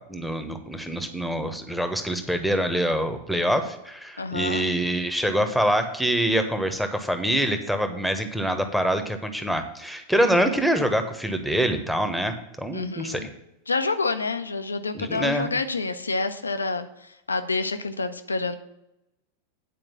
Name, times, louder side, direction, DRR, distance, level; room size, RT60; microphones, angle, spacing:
voice 1, 0.0-13.2 14.9-15.5, equal, ahead, 7 dB, 1.1 m, -25 dB
voice 2, 4.2-4.6 12.7-13.3 13.7-18.6, left 3 dB, 75° left, 10 dB, 0.7 m, -28 dB
9.4 x 4.8 x 7.5 m, 0.88 s
figure-of-eight pair, 90°, 0 cm